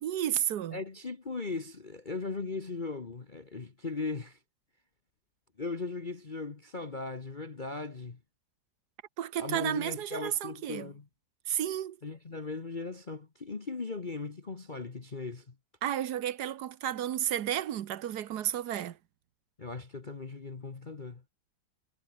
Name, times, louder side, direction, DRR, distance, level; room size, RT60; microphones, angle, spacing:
voice 1, 0.0-0.8 9.2-10.9 11.5-12.0 15.8-19.0, right 11 dB, 60° right, 1.4 m, -32 dB
voice 2, 0.7-4.4 5.6-8.2 9.4-11.1 12.0-15.5 19.6-21.2, left 3 dB, 30° left, 1.2 m, -38 dB
omnidirectional pair, 2.1 m